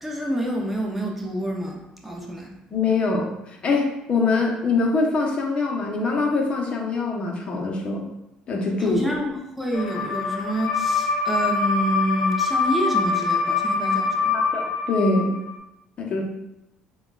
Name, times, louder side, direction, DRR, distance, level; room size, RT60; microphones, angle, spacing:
voice 1, 0.0-2.5 8.8-14.5, right 1 dB, 5° right, -1 dB, 0.6 m, -28 dB
voice 2, 2.7-3.3 3.6-8.0 8.5-9.1 14.3-15.4 16.0-16.2, left 3 dB, 45° left, 0 dB, 0.8 m, -23 dB
sound 1, 9.7-15.5, left 4 dB, 85° left, 0.6 m, -24 dB
6.9 x 2.3 x 2.3 m, 0.91 s
supercardioid pair, 90°, 3 cm